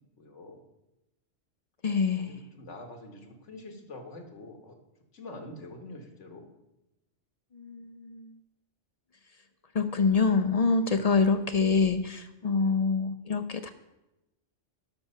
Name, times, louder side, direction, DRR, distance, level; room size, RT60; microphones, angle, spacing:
voice 1, 0.2-0.6 2.2-4.8 5.1-6.5 12.4-12.8, left 2 dB, 80° left, 5 dB, 1.7 m, -45 dB
voice 2, 1.8-2.4 7.5-8.4 9.7-13.7, left 4 dB, 55° left, 10 dB, 0.4 m, -26 dB
12.0 x 6.0 x 5.5 m, 0.95 s
omnidirectional pair, 1.2 m